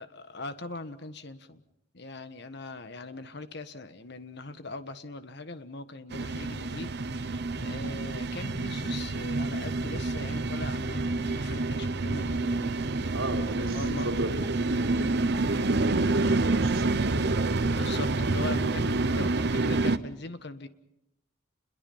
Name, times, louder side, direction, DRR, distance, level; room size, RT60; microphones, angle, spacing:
voice 1, 0.0-1.6 1.9-13.1 13.6-14.1 17.7-20.7, left 3 dB, 55° left, 10 dB, 1.5 m, -41 dB
sound 1, 6.1-20.0, right 3 dB, 55° right, 0.9 m, -28 dB
sound 2, 7.9-8.9 9.2-9.9 10.3-17.4, left 2 dB, 80° left, 4.4 m, -54 dB
voice 2, 13.1-17.4, right 1 dB, 85° right, 1 dB, 3.7 m, -35 dB
29.5 x 22.0 x 5.6 m, 0.80 s
head